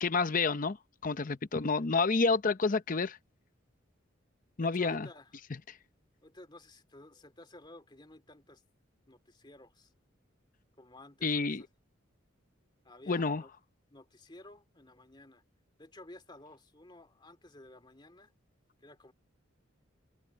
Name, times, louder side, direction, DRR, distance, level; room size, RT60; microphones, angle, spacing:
voice 1, 0.0-0.8 1.0-3.2 4.6-5.1 5.7-5.8 11.2-11.6 13.1-13.4, left 4 dB, 40° left, 0.7 m, -29 dB
voice 2, 4.6-5.3 6.2-8.6 9.1-9.9 10.8-11.6 12.8-13.5 13.9-15.4 15.8-18.3 18.8-19.1, left 1 dB, 25° left, 2.6 m, -53 dB
head